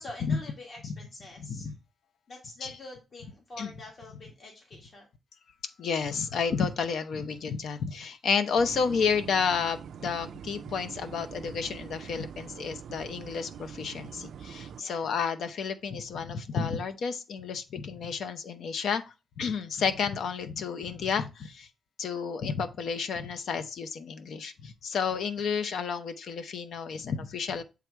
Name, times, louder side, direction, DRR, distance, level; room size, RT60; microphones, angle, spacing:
voice 1, 0.0-1.6 2.3-5.1 14.8-15.0, left 2 dB, 40° left, 1.6 m, -46 dB
voice 2, 1.4-1.7 2.6-2.8 3.6-3.7 5.8-19.0 19.4-21.7 22.0-27.6, left 6 dB, 70° left, 0.7 m, -31 dB
sound 1, 8.6-14.8, right 8 dB, 75° right, 0.3 m, -44 dB
7.6 x 3.5 x 4.6 m
wide cardioid pair, 170°, 0 cm